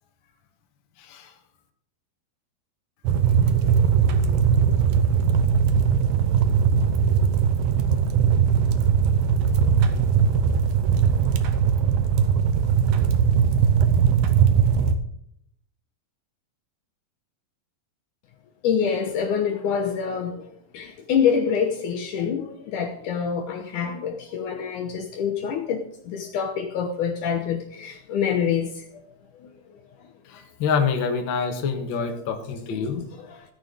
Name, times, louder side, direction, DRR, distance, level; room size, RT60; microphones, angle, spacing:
voice 1, 1.0-1.3 30.3-33.0, left 6 dB, 45° left, 1.7 m, -26 dB
sound 1, 3.0-14.9, right 7 dB, 90° right, 2.9 m, -20 dB
voice 2, 18.6-20.4 20.7-29.0 29.4-29.5 30.0-30.1 33.2-33.4, left 7 dB, 70° left, 2.3 m, -26 dB
17.0 x 9.5 x 3.9 m
omnidirectional pair, 4.2 m